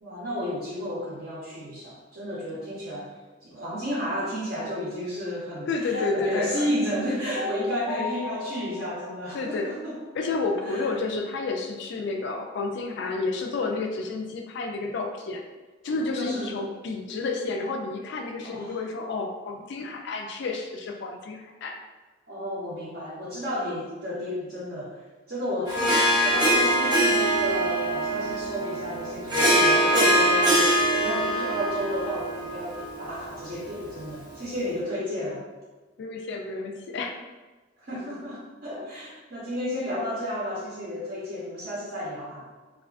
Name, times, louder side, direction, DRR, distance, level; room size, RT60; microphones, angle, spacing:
voice 1, 0.0-3.1 3.4-10.0 10.6-10.9 16.1-16.6 18.4-18.8 22.3-25.0 25.3-35.4 37.8-42.5, left 1 dB, 55° right, -10 dB, 0.7 m, -32 dB
voice 2, 5.7-6.7 9.3-9.8 10.2-15.4 15.8-21.8 36.0-37.2, left 3 dB, 60° left, 3 dB, 0.3 m, -30 dB
sound 1, 5.9-10.1, left 2 dB, 85° left, 0.7 m, -36 dB
Harp, 25.7-34.3, right 1 dB, 20° right, 0.5 m, -23 dB
2.4 x 2.4 x 2.3 m, 1.2 s
head